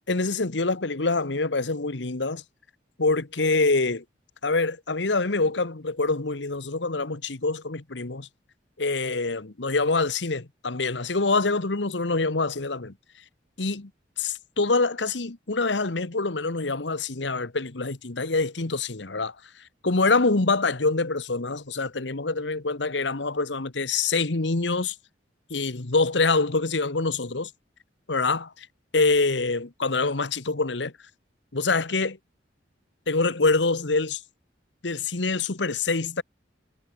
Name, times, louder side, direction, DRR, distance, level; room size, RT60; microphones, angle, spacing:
voice 1, 0.0-2.4 3.0-4.0 4.4-8.3 8.8-12.9 13.6-13.9 14.2-19.3 19.8-24.9 25.5-27.5 28.1-28.7 28.9-30.9 31.5-32.2 33.1-34.2 34.8-36.2, left 3 dB, 75° left, 1.4 m, -25 dB
head